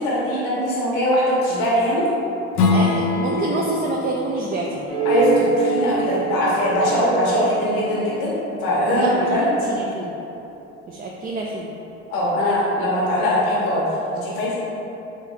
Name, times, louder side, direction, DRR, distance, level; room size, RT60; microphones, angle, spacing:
voice 1, 0.0-2.0 5.0-8.3 8.6-9.5 12.1-14.6, equal, 80° left, -7 dB, 1.1 m, -21 dB
Strum, 2.5-7.7, left 4 dB, 60° left, 0.6 m, -26 dB
voice 2, 2.7-4.9 8.9-9.3 9.6-10.1 10.9-11.7, right 3 dB, 30° right, -1 dB, 0.4 m, -27 dB
sound 1, 4.9-9.8, right 4 dB, 50° right, 1.2 m, -26 dB
3.5 x 3.4 x 3.3 m, 2.9 s
supercardioid pair, 75°, 31 cm